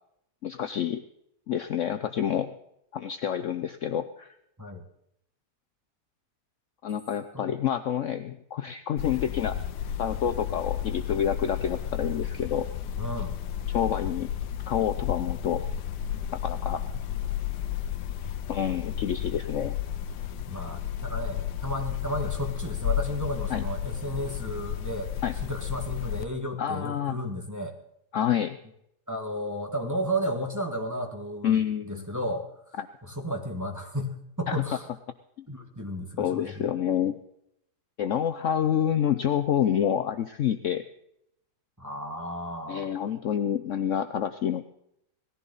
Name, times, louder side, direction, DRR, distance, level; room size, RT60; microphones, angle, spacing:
voice 1, 0.4-1.0 1.5-2.5 2.9-4.3 6.8-9.6 10.0-12.7 13.7-14.3 14.7-15.6 16.3-16.8 18.5-19.8 23.5-23.6 25.2-25.3 26.6-27.1 28.1-28.6 31.4-32.0 32.8-32.9 34.5-34.6 36.2-37.2 38.0-40.9 42.7-44.6, left 9 dB, 60° left, 9 dB, 0.9 m, -28 dB
sound 1, 9.0-26.3, left 10 dB, 90° left, 1.3 m, -32 dB
voice 2, 13.0-13.3 20.5-25.1 25.4-27.7 29.1-32.7 33.0-34.9 35.5-36.6 41.8-42.9, equal, 10° right, 2 dB, 1.6 m, -33 dB
18.5 x 14.5 x 4.0 m, 0.75 s
omnidirectional pair, 1.8 m